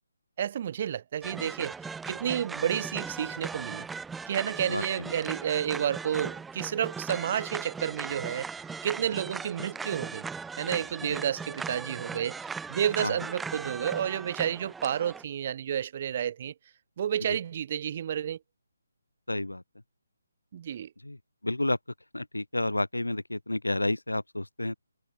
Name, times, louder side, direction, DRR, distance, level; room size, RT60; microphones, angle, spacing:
voice 1, 0.4-1.7 2.1-3.9 4.3-8.5 8.8-10.3 10.6-12.3 12.7-16.5 17.0-18.4 20.5-20.9, right 9 dB, 40° right, 0.6 m, -30 dB
sound 1, 1.2-15.2, right 5 dB, 5° right, 1.6 m, -38 dB
voice 2, 4.7-5.1 11.1-11.2 13.0-13.1 17.3-17.4 19.3-19.6 21.0-21.2 21.4-21.8 22.1-24.8, left 1 dB, 85° left, 1.3 m, -30 dB
figure-of-eight pair, 145°, 0 cm